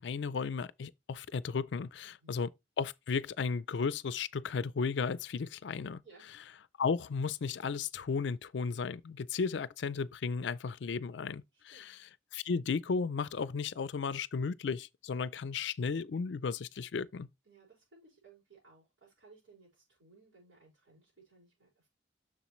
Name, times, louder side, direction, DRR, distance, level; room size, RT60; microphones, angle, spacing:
voice 1, 0.0-2.5 2.8-6.0 6.8-11.4 11.7-12.0 12.3-17.3, left 5 dB, 70° left, 0.4 m, -34 dB
voice 2, 2.0-2.4 6.0-6.3 11.5-11.9 17.4-21.9, right 4 dB, 80° right, 5.2 m, -61 dB
7.1 x 6.4 x 3.1 m
head